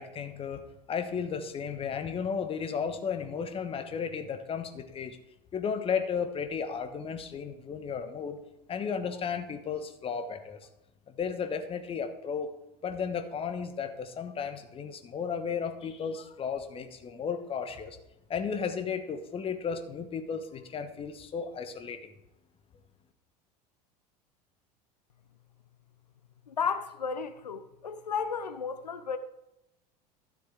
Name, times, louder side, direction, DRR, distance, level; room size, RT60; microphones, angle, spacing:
voice 1, 0.0-5.2 5.5-8.4 8.7-10.6 11.1-12.5 12.8-18.0 18.3-22.0, left 6 dB, 25° left, 1.1 m, -34 dB
voice 2, 26.5-29.2, left 6 dB, 80° left, 0.7 m, -33 dB
12.5 x 7.6 x 3.7 m
figure-of-eight pair, 75°, 21 cm